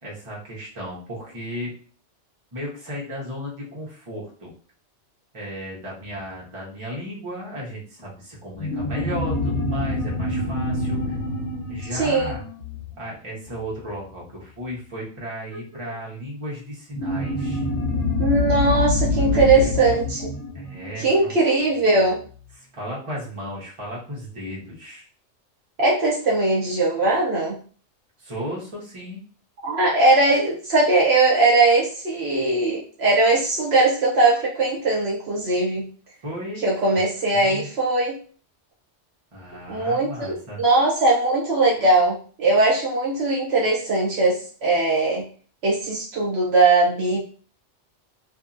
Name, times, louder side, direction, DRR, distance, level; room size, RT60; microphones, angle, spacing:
voice 1, 0.0-1.7 2.5-4.5 5.3-11.2 11.7-12.4 13.0-17.6 19.2-19.8 20.5-21.3 22.5-25.1 28.2-29.2 36.2-36.6 36.9-37.0 37.3-37.7 39.3-40.6, equal, 30° right, -5 dB, 0.9 m, -35 dB
sound 1, 8.6-13.5 16.9-21.8, left 2 dB, 80° left, 1.2 m, -26 dB
voice 2, 11.9-12.3 18.2-20.3 21.0-22.2 25.8-27.6 29.6-35.9 36.6-38.2 39.7-45.3 45.6-47.2, right 2 dB, 65° right, -4 dB, 0.9 m, -20 dB
2.6 x 2.6 x 2.5 m, 0.42 s
omnidirectional pair, 1.2 m